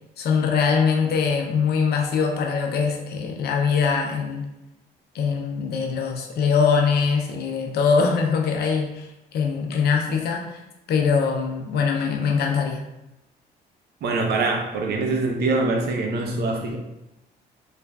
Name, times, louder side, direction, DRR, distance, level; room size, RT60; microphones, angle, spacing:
voice 1, 0.2-4.5 5.1-10.6 10.9-12.9, left 5 dB, 65° left, 2 dB, 0.6 m, -22 dB
voice 2, 14.0-16.8, right 3 dB, 65° right, 1 dB, 0.6 m, -24 dB
3.1 x 2.4 x 2.3 m, 0.92 s
cardioid pair, 80°, 18 cm